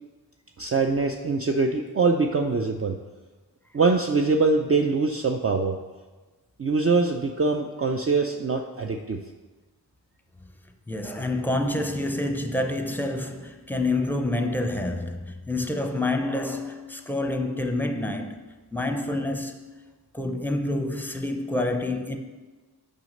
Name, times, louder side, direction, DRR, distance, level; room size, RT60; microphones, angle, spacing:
voice 1, 0.6-3.0 3.7-5.8 6.6-9.2, right 4 dB, 35° right, 0.5 m, -23 dB
voice 2, 10.9-18.4 18.7-19.6 20.1-22.2, left 2 dB, 5° left, 0.7 m, -27 dB
6.2 x 5.7 x 5.2 m
wide cardioid pair, 70°, 39 cm